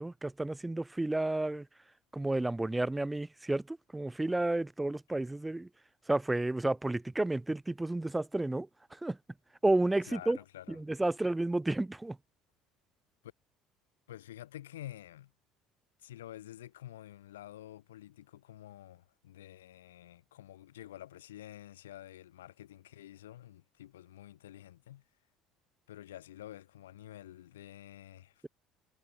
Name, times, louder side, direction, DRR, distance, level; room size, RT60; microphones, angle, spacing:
voice 1, 0.0-1.7 2.1-5.7 6.1-9.2 9.6-10.4 10.7-12.2, right 2 dB, 10° right, 4.1 m, -31 dB
voice 2, 10.1-10.8 14.1-15.3 16.0-25.0 25.9-28.5, left 13 dB, 75° left, 5.9 m, -49 dB
figure-of-eight pair, 60°, 0 cm